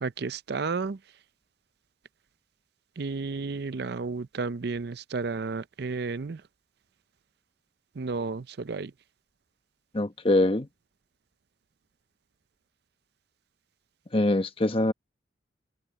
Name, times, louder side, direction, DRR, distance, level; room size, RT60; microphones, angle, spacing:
voice 1, 0.0-1.0 3.0-6.4 8.0-8.9, right 4 dB, 60° right, 0.6 m, -32 dB
voice 2, 9.9-10.7 14.1-14.9, left 1 dB, 30° left, 1.2 m, -23 dB
open air
head